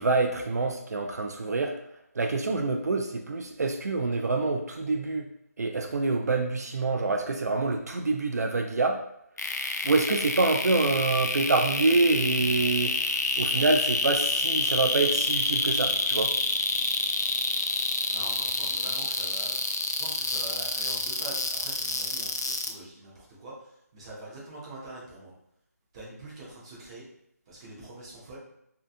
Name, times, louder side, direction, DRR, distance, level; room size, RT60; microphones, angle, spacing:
voice 1, 0.0-1.8 2.1-5.3 5.6-9.0 9.8-13.0 13.4-16.3, right 3 dB, 70° right, 4 dB, 0.4 m, -26 dB
sound 1, 9.4-22.7, left 3 dB, 80° left, 0.4 m, -27 dB
voice 2, 18.1-25.3 25.9-27.1 27.5-28.4, right 2 dB, 15° right, -6 dB, 0.6 m, -44 dB
2.7 x 2.2 x 2.5 m, 0.76 s
figure-of-eight pair, 165°, 9 cm